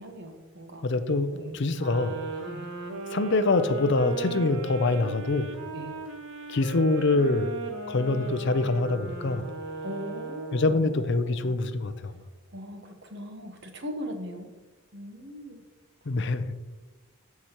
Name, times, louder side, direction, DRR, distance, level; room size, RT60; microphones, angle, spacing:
voice 1, 0.0-0.9 1.3-1.6 2.5-2.7 5.7-5.9 9.8-11.5 12.5-14.5 14.9-15.6, equal, 50° right, 4 dB, 1.2 m, -39 dB
voice 2, 0.8-2.2 3.1-5.5 6.5-7.5 7.9-9.5 10.5-12.1 16.1-16.7, left 2 dB, 50° left, 11 dB, 0.5 m, -25 dB
sound 1, 1.7-11.0, right 3 dB, 70° right, 1.2 m, -37 dB
14.5 x 5.9 x 3.0 m, 1.2 s
head